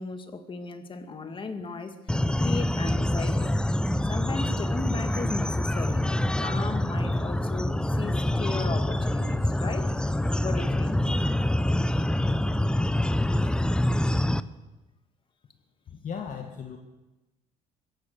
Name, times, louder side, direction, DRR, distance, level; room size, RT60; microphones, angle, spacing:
voice 1, 0.0-2.0 2.4-3.5 4.1-9.9 10.4-11.0, left 3 dB, 30° left, 8 dB, 2.1 m, -36 dB
sound 1, 2.1-14.4, left 1 dB, 5° left, 0.7 m, -26 dB
voice 2, 15.9-16.8, left 7 dB, 45° left, 4 dB, 1.9 m, -36 dB
22.5 x 17.0 x 6.8 m, 1.1 s
cardioid pair, 110°, 17 cm